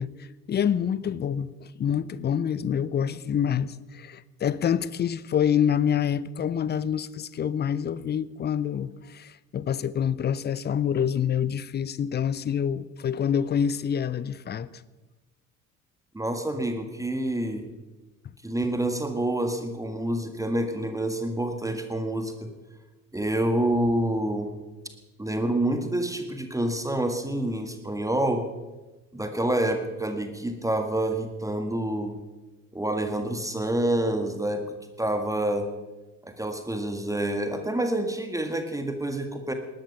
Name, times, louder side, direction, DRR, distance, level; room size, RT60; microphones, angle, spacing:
voice 1, 0.0-14.7, left 8 dB, 25° left, 0.7 m, -27 dB
voice 2, 16.1-17.7 18.4-22.5 23.1-24.6 25.2-28.4 29.1-32.2 32.7-34.7 35.0-35.7 36.2-39.5, right 1 dB, 10° right, 1.7 m, -27 dB
19.0 x 11.5 x 5.8 m
figure-of-eight pair, 55°, 41 cm